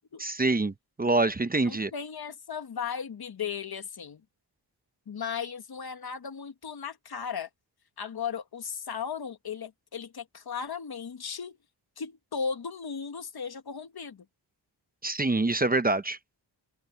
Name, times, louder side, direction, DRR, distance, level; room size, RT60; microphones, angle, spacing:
voice 1, 0.2-0.7 1.0-1.9 15.0-16.2, right 2 dB, 20° right, 0.8 m, -25 dB
voice 2, 1.6-4.2 5.1-7.5 8.0-11.6 12.0-14.2, left 6 dB, 60° left, 1.7 m, -36 dB
wide cardioid pair, 130°, 43 cm